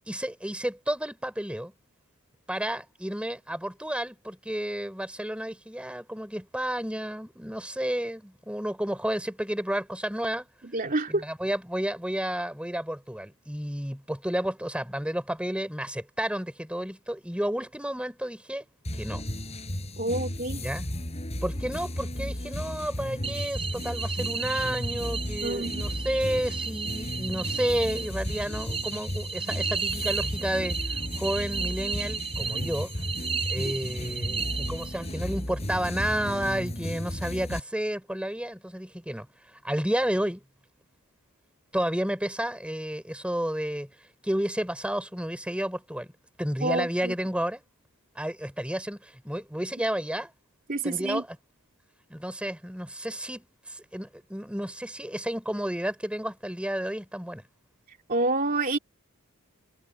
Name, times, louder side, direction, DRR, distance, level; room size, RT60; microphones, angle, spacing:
voice 1, 0.1-1.7 2.5-10.5 11.1-18.6 19.0-19.2 20.6-20.9 21.4-32.9 33.5-39.3 39.6-40.4 41.7-43.9 44.2-46.1 46.4-47.6 48.2-50.3 50.8-51.4 52.1-57.4, equal, 5° right, 4.0 m, -31 dB
voice 2, 10.7-11.2 20.0-20.6 25.4-25.8 46.6-47.1 50.7-51.2 58.1-58.8, right 2 dB, 40° right, 2.9 m, -28 dB
sound 1, 18.8-37.6, left 1 dB, 30° left, 5.2 m, -34 dB
sound 2, 23.2-35.2, right 6 dB, 25° right, 7.0 m, -34 dB
head